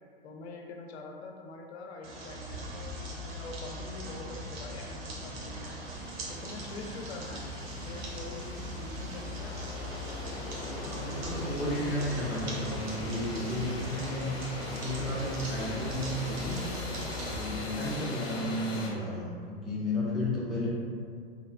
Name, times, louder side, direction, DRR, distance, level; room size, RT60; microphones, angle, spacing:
voice 1, 0.2-5.8 6.3-9.6, left 2 dB, 85° left, 2 dB, 0.5 m, -45 dB
sound 1, 2.0-17.5, equal, 70° right, 0.7 m, -40 dB
sound 2, 2.9-3.0 3.3-18.9, left 1 dB, 45° left, 0.6 m, -41 dB
voice 2, 10.8-16.6 17.2-20.7, left 1 dB, ahead, -8 dB, 0.3 m, -33 dB
2.9 x 2.3 x 2.4 m, 2.1 s
hypercardioid pair, 110°, 32 cm